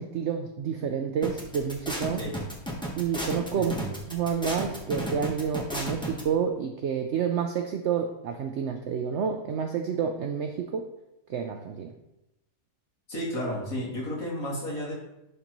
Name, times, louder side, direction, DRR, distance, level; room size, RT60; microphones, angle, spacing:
voice 1, 0.0-2.2 3.0-3.8 4.1-10.9 11.3-12.0, right 7 dB, 75° right, 5 dB, 0.6 m, -29 dB
sound 1, 1.2-6.2, equal, 5° left, 0.8 m, -33 dB
voice 2, 3.5-3.9 13.1-14.9, equal, 55° left, -6 dB, 2.6 m, -32 dB
11.5 x 3.9 x 3.0 m, 0.91 s
omnidirectional pair, 1.7 m